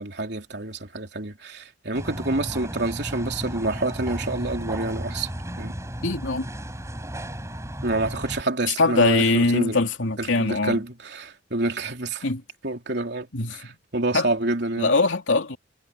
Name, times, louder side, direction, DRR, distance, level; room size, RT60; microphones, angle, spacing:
voice 1, 0.0-5.3 5.6-5.7 7.8-9.8 10.2-12.3 12.6-14.9, right 2 dB, 60° right, 3.6 m, -28 dB
sound 1, 1.9-8.4, equal, 15° right, 4.9 m, -34 dB
voice 2, 6.0-6.5 8.8-10.8 12.2-12.4 13.3-13.6 14.1-14.3 14.8-15.6, left 3 dB, 80° left, 2.7 m, -22 dB
head